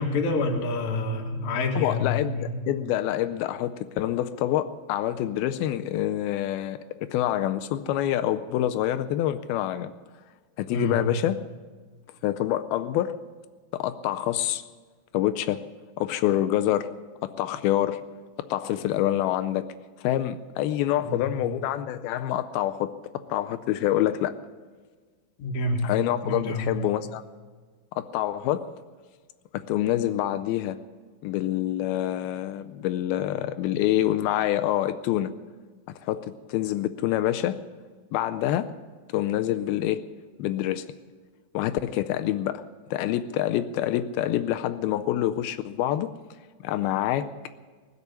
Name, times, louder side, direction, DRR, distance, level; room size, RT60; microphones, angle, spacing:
voice 1, 0.0-2.6 10.7-11.0 21.0-21.3 25.4-25.9 26.2-26.7, left 2 dB, 55° left, 2 dB, 2.5 m, -28 dB
voice 2, 1.8-6.8 7.1-9.9 10.6-11.5 12.2-13.2 13.7-14.6 15.1-15.6 16.0-16.9 17.2-18.0 18.5-19.6 20.0-22.9 23.3-24.4 25.8-27.2 28.0-28.7 29.7-30.8 31.2-35.3 36.0-37.6 38.1-38.8 39.1-40.0 40.4-40.9 41.5-42.6 42.9-46.1 46.6-47.3, left 12 dB, 80° left, 10 dB, 2.2 m, -26 dB
20.0 x 6.8 x 9.8 m, 1.5 s
omnidirectional pair, 4.8 m